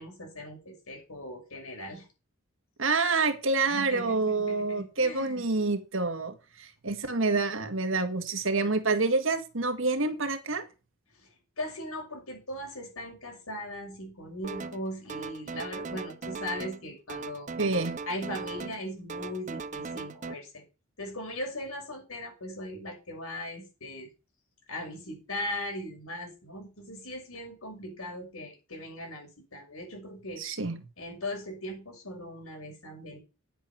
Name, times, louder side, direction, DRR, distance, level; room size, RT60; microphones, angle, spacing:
voice 1, 0.0-2.1 3.6-5.4 11.2-11.3 11.6-17.5 18.1-20.6 21.0-24.1 24.7-30.4 31.0-33.2, left 1 dB, 90° left, 2 dB, 6.2 m, -39 dB
voice 2, 2.8-10.6 17.6-17.9 30.4-30.8, right 3 dB, 70° right, 8 dB, 1.8 m, -27 dB
sound 1, 14.4-14.8 15.1-16.8 17.1-18.8 19.1-20.3, right 4 dB, 35° right, 0.5 m, -38 dB
10.5 x 8.0 x 5.8 m, 0.31 s
head